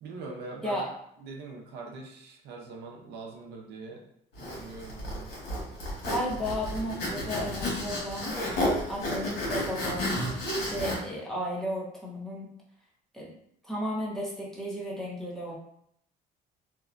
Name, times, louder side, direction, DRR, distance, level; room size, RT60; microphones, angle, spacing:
voice 1, 0.0-0.9 1.2-4.1 4.4-5.3 9.1-9.2, right 3 dB, 80° right, 1 dB, 0.6 m, -42 dB
Zipper (clothing), 4.4-11.0, left 1 dB, 75° left, 1.2 m, -32 dB
voice 2, 6.0-8.4 8.9-10.3 10.6-12.5 13.1-13.3 13.6-15.6, equal, ahead, -5 dB, 0.8 m, -34 dB
2.8 x 2.2 x 2.4 m, 0.71 s
cardioid pair, 110°, 17 cm